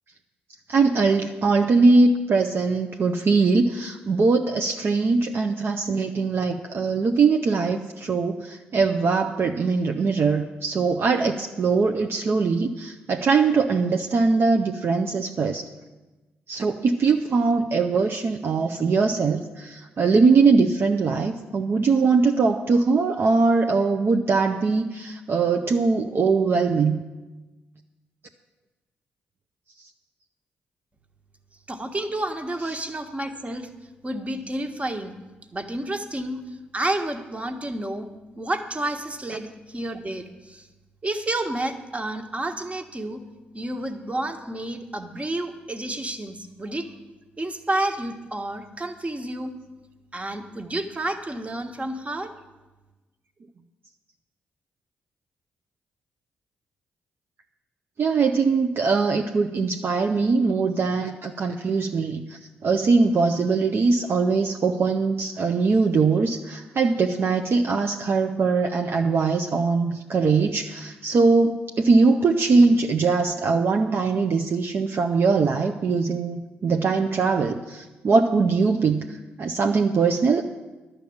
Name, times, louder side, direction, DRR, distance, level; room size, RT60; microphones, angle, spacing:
voice 1, 0.7-15.7 16.5-27.0 58.0-80.4, right 4 dB, 55° right, 4 dB, 0.7 m, -21 dB
voice 2, 31.7-33.7 34.0-35.1 35.5-36.4 36.7-38.1 38.4-40.7 41.0-43.2 43.5-46.9 47.4-49.5 50.1-52.3, right 1 dB, 25° right, 7 dB, 1.4 m, -30 dB
11.5 x 6.7 x 8.6 m, 1.2 s
hypercardioid pair, 40°, 5 cm